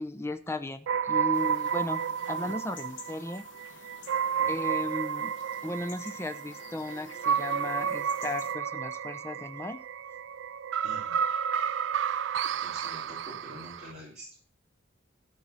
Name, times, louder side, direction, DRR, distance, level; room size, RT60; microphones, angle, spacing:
voice 1, 0.0-3.4 4.5-5.3 5.6-9.8, left 1 dB, 15° left, 9 dB, 0.5 m, -36 dB
sound 1, 0.9-13.9, right 7 dB, 75° right, 0.4 m, -31 dB
sound 2, 1.3-8.5, left 4 dB, 70° left, 1.3 m, -50 dB
voice 2, 10.8-11.2 12.5-14.5, equal, 35° right, -8 dB, 4.1 m, -46 dB
13.0 x 4.4 x 6.0 m, 0.41 s
head